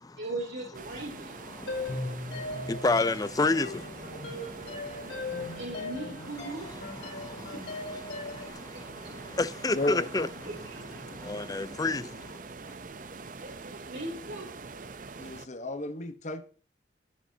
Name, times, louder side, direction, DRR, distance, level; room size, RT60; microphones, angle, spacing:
voice 1, 0.2-1.3 5.6-6.7 7.5-7.6 10.4-11.0 13.4-14.7, right 2 dB, 90° right, 3.2 m, -39 dB
sound 1, 0.7-15.5, right 4 dB, 45° right, 0.6 m, -44 dB
voice 2, 1.6-5.6 7.1-7.5 8.1-10.3 11.0-12.4, left 3 dB, 20° left, 0.5 m, -32 dB
sound 2, 1.7-8.5, left 2 dB, 80° left, 3.6 m, -38 dB
voice 3, 9.7-10.3 15.2-16.4, left 1 dB, 40° left, 1.1 m, -32 dB
19.0 x 6.9 x 2.8 m
head